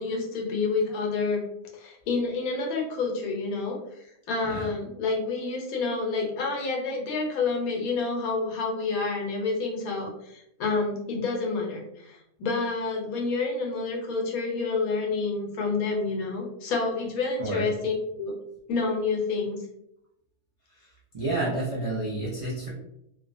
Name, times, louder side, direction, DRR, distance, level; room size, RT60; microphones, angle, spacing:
voice 1, 0.0-1.4 1.7-18.3 18.7-19.6, left 4 dB, 80° left, 0 dB, 1.1 m, -29 dB
voice 2, 21.1-22.7, right 2 dB, 55° right, -6 dB, 0.3 m, -29 dB
2.7 x 2.2 x 2.5 m, 0.80 s
omnidirectional pair, 1.5 m